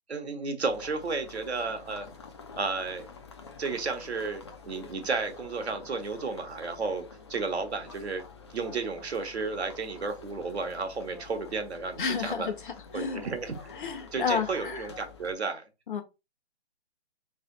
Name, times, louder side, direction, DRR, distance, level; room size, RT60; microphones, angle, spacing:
voice 1, 0.1-2.1 2.6-3.1 3.6-7.0 7.3-8.2 8.5-12.5 12.9-13.5 14.1-15.6, right 4 dB, 80° right, 1.1 m, -32 dB
sound 1, 0.6-15.3, left 4 dB, 25° left, 0.4 m, -48 dB
voice 2, 12.0-13.2 13.7-14.9 15.9-16.0, left 6 dB, 50° left, 0.9 m, -31 dB
3.3 x 2.8 x 3.9 m
hypercardioid pair, 150°, 32 cm